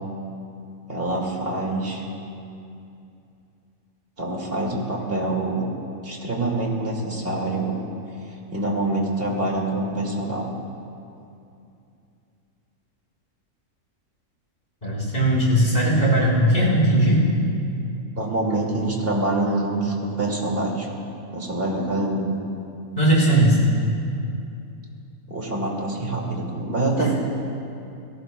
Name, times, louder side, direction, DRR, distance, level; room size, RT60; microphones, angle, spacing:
voice 1, 0.9-2.0 4.2-5.6 6.0-7.8 8.5-10.5 18.2-20.9 21.3-22.3 25.3-27.1, right 2 dB, 40° right, -2 dB, 2.5 m, -25 dB
voice 2, 14.8-17.3 23.0-23.6 27.0-27.1, right 1 dB, 35° left, -6 dB, 5.0 m, -18 dB
28.0 x 18.0 x 2.2 m, 2.6 s
omnidirectional pair, 1.6 m